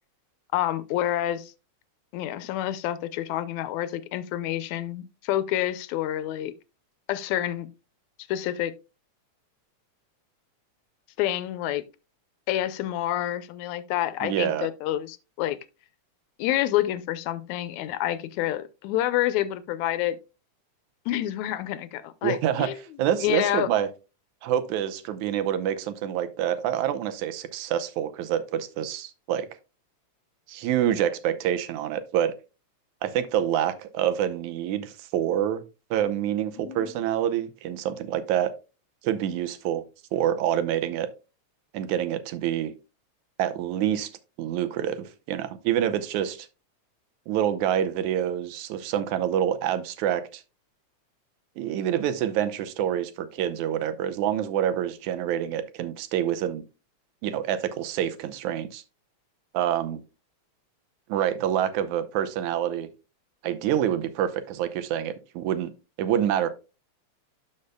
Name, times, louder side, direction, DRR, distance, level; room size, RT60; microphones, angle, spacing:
voice 1, 0.5-1.5 2.1-6.5 7.1-7.7 8.3-8.7 11.2-11.8 12.5-15.6 16.4-20.2 21.1-22.8 23.2-23.7 36.6-36.9, left 13 dB, 80° left, 2.0 m, -28 dB
voice 2, 14.2-14.7 22.2-22.7 23.0-23.9 24.4-29.5 30.5-32.3 33.0-35.6 35.9-38.5 39.0-39.8 40.1-41.1 41.7-42.7 43.4-44.1 44.4-46.5 47.3-50.4 51.6-56.6 57.2-58.8 59.5-60.0 61.1-62.9 63.4-65.7 66.0-66.5, right 10 dB, 85° right, 2.2 m, -27 dB
12.0 x 5.5 x 2.2 m
omnidirectional pair, 3.3 m